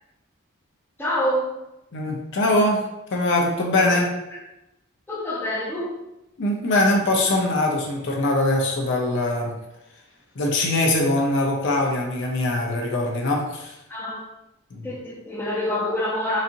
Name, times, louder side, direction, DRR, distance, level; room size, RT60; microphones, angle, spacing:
voice 1, 1.0-1.5 3.7-3.8 5.1-6.0 13.9-14.2 14.8-16.4, left 1 dB, 10° left, -4 dB, 0.6 m, -26 dB
voice 2, 1.9-2.8 3.1-4.2 6.4-9.5 10.4-13.8 14.7-14.9, left 2 dB, 60° left, 0 dB, 0.6 m, -22 dB
4.0 x 2.7 x 2.5 m, 0.90 s
head